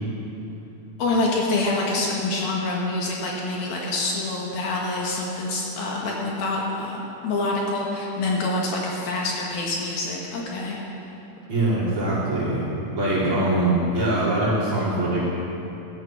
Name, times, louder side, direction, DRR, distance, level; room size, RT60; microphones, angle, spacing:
voice 1, 1.0-10.8, left 2 dB, 65° left, -2 dB, 3.3 m, -26 dB
voice 2, 11.5-12.6 13.0-15.2, right 1 dB, 30° right, -10 dB, 5.3 m, -22 dB
16.0 x 13.5 x 6.2 m, 2.9 s
omnidirectional pair, 4.8 m